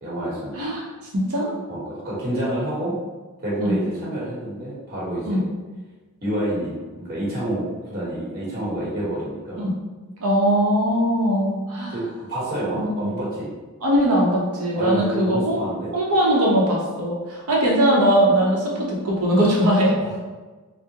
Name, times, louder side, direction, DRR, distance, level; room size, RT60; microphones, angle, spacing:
voice 1, 0.0-0.6 1.7-3.0 3.4-5.4 6.2-9.6 11.9-13.5 14.7-15.9 20.0-20.2, right 1 dB, 45° right, -7 dB, 1.1 m, -28 dB
voice 2, 1.1-1.5 3.6-3.8 5.2-5.4 9.6-9.7 10.2-12.0 12.7-13.1 13.8-15.6 15.9-19.9, equal, 85° right, -3 dB, 0.8 m, -20 dB
3.5 x 2.1 x 2.8 m, 1.3 s
head